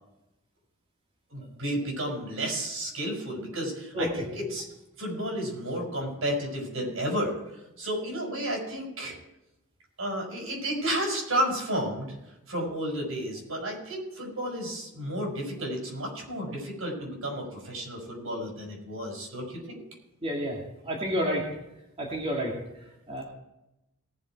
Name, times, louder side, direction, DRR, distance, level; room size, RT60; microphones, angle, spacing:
voice 1, 1.3-4.7 5.0-9.2 10.0-19.8, right 1 dB, 70° right, 0 dB, 5.7 m, -32 dB
voice 2, 20.2-20.6 20.9-21.4 22.0-22.5 23.1-23.2, equal, 25° right, -3 dB, 2.1 m, -29 dB
19.0 x 7.3 x 4.6 m, 0.91 s
head